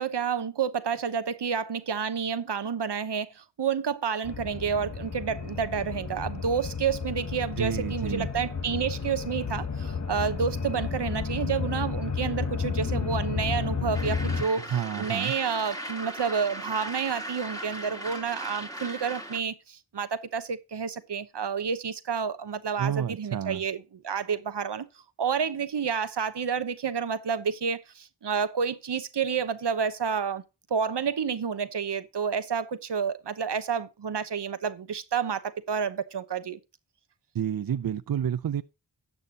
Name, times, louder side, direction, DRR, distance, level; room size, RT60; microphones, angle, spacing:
voice 1, 0.0-23.8 24.0-24.9 25.2-30.4 30.7-36.6, right 6 dB, 80° right, 0.9 m, -30 dB
sound 1, 4.2-14.5, left 5 dB, 40° left, 1.2 m, -32 dB
voice 2, 7.6-8.3 14.6-15.3 22.8-23.6 37.3-38.6, right 9 dB, 60° right, 0.5 m, -30 dB
sound 2, 13.9-19.4, right 1 dB, 10° left, 2.1 m, -38 dB
13.0 x 8.5 x 2.8 m
wide cardioid pair, 50°, 41 cm